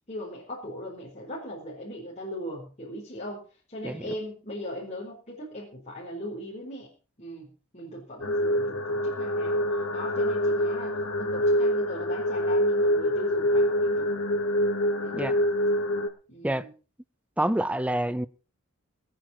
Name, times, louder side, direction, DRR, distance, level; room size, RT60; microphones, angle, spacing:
voice 1, 0.1-3.4 3.7-6.9 7.2-9.6 9.9-14.1 15.0-15.4 16.3-16.7, equal, 30° left, 4.4 m, -39 dB
voice 2, 3.8-4.1 15.1-15.4 16.4-16.7 17.4-18.3, right 1 dB, 5° right, 0.6 m, -27 dB
sound 1, 8.2-16.1, equal, 80° left, 2.2 m, -25 dB
22.5 x 9.0 x 4.5 m
head